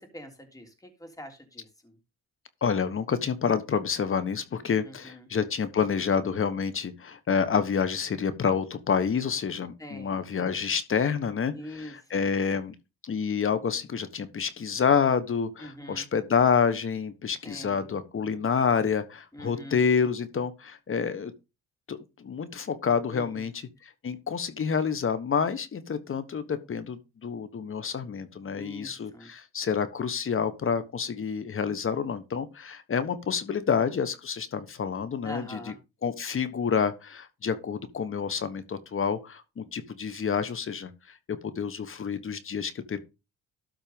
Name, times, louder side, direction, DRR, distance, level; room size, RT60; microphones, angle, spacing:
voice 1, 0.0-2.0 4.8-5.3 9.8-10.2 11.5-12.3 15.6-16.1 17.4-17.9 19.3-19.8 23.1-23.5 28.6-29.3 35.2-35.7, left 1 dB, 10° left, 4 dB, 3.2 m, -43 dB
voice 2, 2.6-12.7 13.0-21.3 21.9-35.7 36.0-43.0, left 6 dB, 45° left, 12 dB, 1.3 m, -28 dB
12.5 x 4.4 x 5.3 m, 0.27 s
cardioid pair, 90°, 30 cm